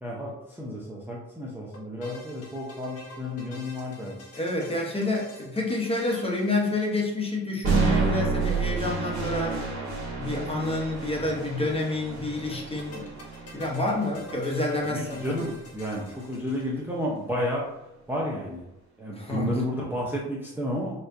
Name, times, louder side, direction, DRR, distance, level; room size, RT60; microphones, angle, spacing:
voice 1, 0.0-4.2 14.8-17.7 18.1-18.7 19.0-21.0, equal, 5° right, -5 dB, 0.6 m, -31 dB
sound 1, 1.7-7.5 8.8-9.7 9.9-10.0 10.2-10.3 12.5-17.0, equal, 55° left, 1.0 m, -47 dB
voice 2, 4.3-9.7 10.2-13.0 13.5-15.4 19.1-19.5, left 2 dB, 20° left, -1 dB, 1.0 m, -28 dB
sound 2, 7.6-15.7, right 4 dB, 65° right, 1.3 m, -30 dB
4.4 x 2.5 x 2.6 m, 0.93 s
cardioid pair, 90°, 30 cm